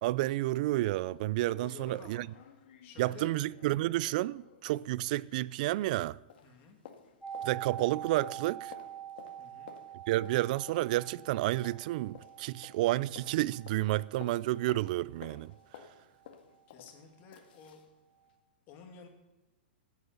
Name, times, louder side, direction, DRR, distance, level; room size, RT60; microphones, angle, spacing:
voice 1, 0.0-2.3 3.0-6.2 7.4-8.7 10.1-15.5, right 17 dB, 50° right, 0.4 m, -30 dB
sound 1, 0.6-0.7 1.1-1.2 1.5-6.0 6.3-17.9 18.3-18.4, left 8 dB, 60° left, 1.7 m, -55 dB
voice 2, 1.6-2.5 2.8-3.3 6.4-6.8 9.4-9.7 16.7-17.8 18.7-19.1, left 7 dB, 35° left, 2.4 m, -52 dB
sound 2, 7.2-17.0 17.2-17.3, right 10 dB, ahead, 1.5 m, -46 dB
14.5 x 8.1 x 6.9 m
hypercardioid pair, 140°, 6 cm